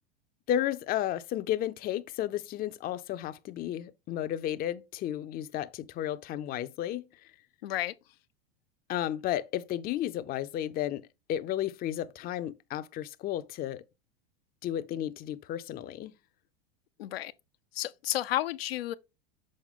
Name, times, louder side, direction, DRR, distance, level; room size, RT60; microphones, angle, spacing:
voice 1, 0.5-7.1 8.9-13.8 14.6-16.1, left 12 dB, 30° left, 0.5 m, -33 dB
voice 2, 7.6-7.9 17.0-17.3 17.7-18.9, left 15 dB, 80° left, 0.5 m, -31 dB
6.4 x 4.4 x 3.6 m
hypercardioid pair, 105°, 30 cm